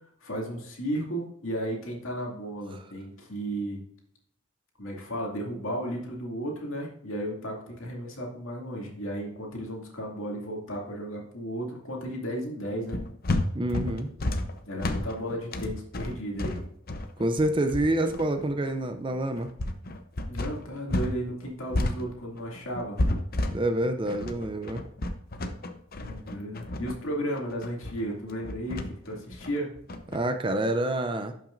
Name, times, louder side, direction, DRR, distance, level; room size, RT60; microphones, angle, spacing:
voice 1, 0.2-3.8 4.8-13.0 14.6-16.6 20.3-23.0 26.0-29.8, equal, 65° left, -1 dB, 2.5 m, -34 dB
sound 1, 12.9-21.2 21.4-30.2, left 1 dB, 45° left, 0.7 m, -31 dB
voice 2, 13.5-14.1 17.2-19.5 23.5-24.8 30.1-31.3, right 1 dB, 20° right, 8 dB, 0.5 m, -27 dB
11.5 x 6.0 x 2.6 m, 0.70 s
head